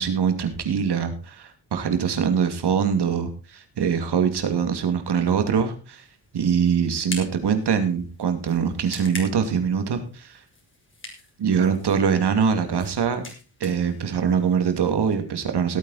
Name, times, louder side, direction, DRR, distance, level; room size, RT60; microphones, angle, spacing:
voice 1, 0.0-6.0 6.3-10.4 11.4-13.2 13.6-15.8, right 7 dB, 70° right, 8 dB, 2.5 m, -23 dB
sound 1, 5.9-15.1, left 2 dB, 30° left, 5.1 m, -43 dB
17.0 x 8.9 x 4.2 m, 0.33 s
cardioid pair, 95°, 41 cm